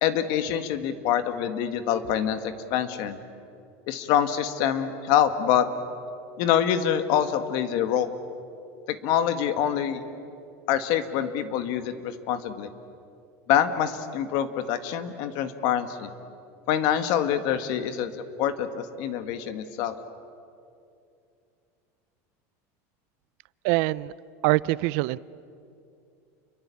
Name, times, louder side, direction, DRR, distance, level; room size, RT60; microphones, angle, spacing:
voice 1, 0.0-3.2 3.9-5.7 6.4-8.1 8.9-10.0 10.7-12.7 13.5-16.1 16.7-18.1 18.4-20.0, left 9 dB, 55° left, 1.9 m, -25 dB
voice 2, 23.6-24.1 24.4-25.2, right 20 dB, 65° right, 0.6 m, -24 dB
30.0 x 23.5 x 8.6 m
supercardioid pair, 150°, 8 cm